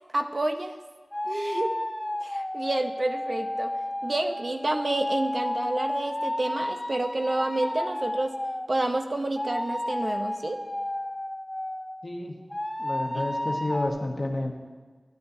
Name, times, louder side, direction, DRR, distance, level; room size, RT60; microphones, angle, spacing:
voice 1, 0.1-0.7 1.3-1.8 2.2-3.7 4.0-8.3 8.7-10.6 13.1-13.2, right 2 dB, 55° right, 5 dB, 0.7 m, -29 dB
sound 1, 1.1-8.7 9.3-12.0 12.5-13.9, left 1 dB, 15° left, 0.7 m, -32 dB
voice 2, 12.0-12.4 12.8-14.5, left 1 dB, 55° left, 2 dB, 1.2 m, -30 dB
14.5 x 10.5 x 2.7 m, 1.4 s
wide cardioid pair, 70°, 0 cm